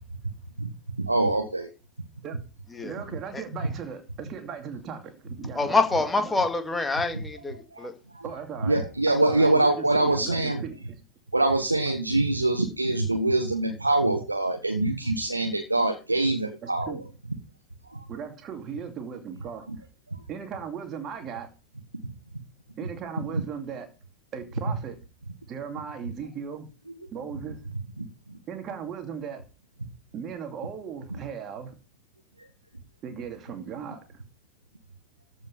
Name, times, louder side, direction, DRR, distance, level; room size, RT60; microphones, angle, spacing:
voice 1, 1.0-1.7 7.7-7.8 8.1-8.2 8.6-10.6 11.3-17.0 17.9-18.0 28.0-28.1, right 2 dB, 85° right, 1.4 m, -24 dB
voice 2, 2.8-6.3 8.2-11.0 16.6-17.1 18.1-19.7 20.3-21.5 22.8-23.9 24.3-25.0 25.5-26.7 27.1-27.6 28.5-29.4 30.1-31.8 33.0-34.2, right 7 dB, 30° right, 2.6 m, -37 dB
voice 3, 5.6-7.9, left 3 dB, 10° left, 2.0 m, -26 dB
14.5 x 5.3 x 5.5 m
figure-of-eight pair, 90°, 0 cm